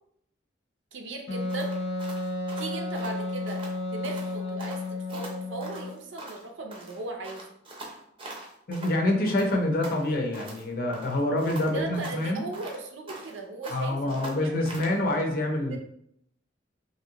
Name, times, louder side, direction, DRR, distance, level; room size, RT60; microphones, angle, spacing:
voice 1, 0.9-1.7 2.6-3.6 3.9-4.8 5.1-7.5 11.5-14.6 15.7-15.8, right 3 dB, 75° right, 3 dB, 0.6 m, -37 dB
Wind instrument woodwind instrument, 1.3-5.9, left 2 dB, 90° left, 0.8 m, -32 dB
sound 1, 1.5-3.8 4.0-4.3 4.6-6.5 6.7-9.0 9.3-10.6 10.9-13.4 13.6-15.0, right 2 dB, 25° right, 0.6 m, -43 dB
voice 2, 8.7-12.4 13.7-15.8, left 1 dB, 50° left, 2 dB, 0.6 m, -26 dB
3.0 x 2.6 x 2.8 m, 0.71 s
head